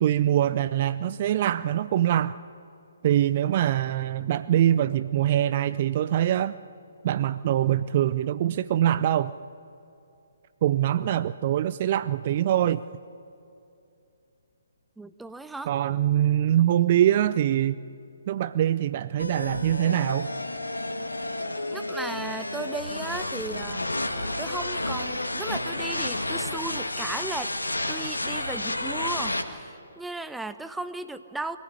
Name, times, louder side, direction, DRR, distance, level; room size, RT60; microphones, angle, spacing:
voice 1, 0.0-2.4 3.0-6.6 7.0-9.3 10.6-12.8 15.7-17.8 18.3-20.3, right 11 dB, 40° right, 15 dB, 0.5 m, -23 dB
voice 2, 15.0-15.7 21.7-23.8 24.4-27.5 27.9-31.6, right 2 dB, 5° right, 11 dB, 0.8 m, -36 dB
sound 1, 19.2-29.4, left 1 dB, 85° left, 1.9 m, -31 dB
24.5 x 15.5 x 9.9 m, 2.6 s
figure-of-eight pair, 135°, 0 cm